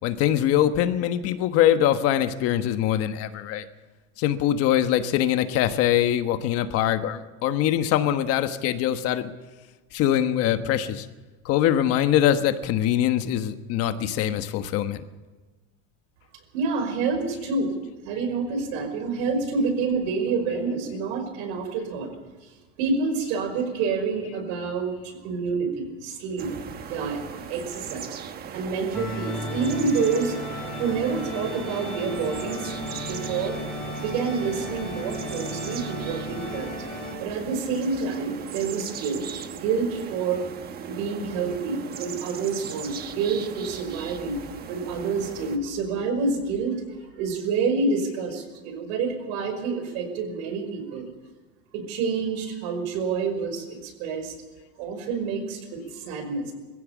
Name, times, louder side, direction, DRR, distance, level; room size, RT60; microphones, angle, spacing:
voice 1, 0.0-3.7 4.2-9.3 9.9-11.1 11.4-15.0, left 11 dB, 50° left, 9 dB, 1.3 m, -23 dB
voice 2, 16.5-17.8 18.0-22.1 22.4-22.5 22.8-26.5 26.9-27.2 27.5-28.1 28.5-32.8 33.1-33.6 33.9-36.7 37.2-40.5 40.8-44.4 44.7-46.8 47.2-51.1 51.7-54.3 54.8-56.5, right 4 dB, 75° right, 6 dB, 5.5 m, -28 dB
sound 1, 26.4-45.6, right 8 dB, 30° right, 1.2 m, -38 dB
sound 2, 28.9-37.1, left 1 dB, ahead, 5.6 m, -35 dB
22.5 x 15.5 x 7.3 m, 1.2 s
cardioid pair, 165°, 32 cm